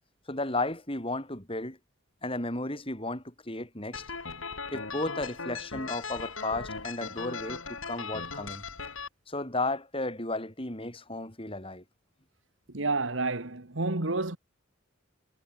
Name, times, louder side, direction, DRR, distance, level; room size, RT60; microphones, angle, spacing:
voice 1, 0.3-1.8 2.2-4.0 4.7-8.6 9.3-11.8, left 2 dB, 25° left, 6.2 m, -34 dB
sound 1, 3.9-9.1, left 4 dB, 90° left, 5.2 m, -38 dB
voice 2, 12.7-14.4, right 3 dB, 70° right, 1.9 m, -29 dB
head